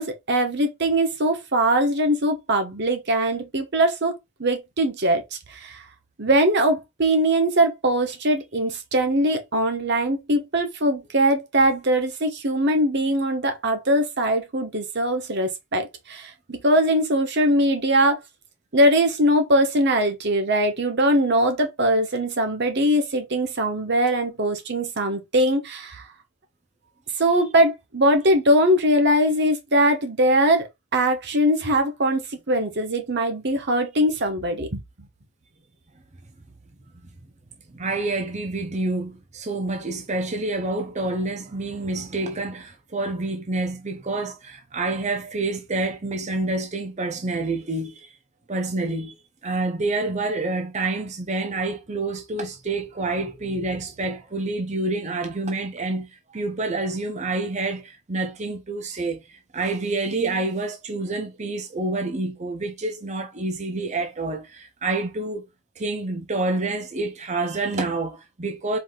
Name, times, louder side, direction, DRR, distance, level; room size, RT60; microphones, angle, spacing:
voice 1, 0.0-5.8 6.2-18.2 18.7-26.0 27.2-34.8, right 1 dB, 50° right, 1.1 m, -21 dB
voice 2, 37.7-48.1 48.5-49.1 49.4-65.5 65.8-68.8, right 2 dB, 30° right, 0.7 m, -28 dB
4.7 x 2.7 x 3.8 m
head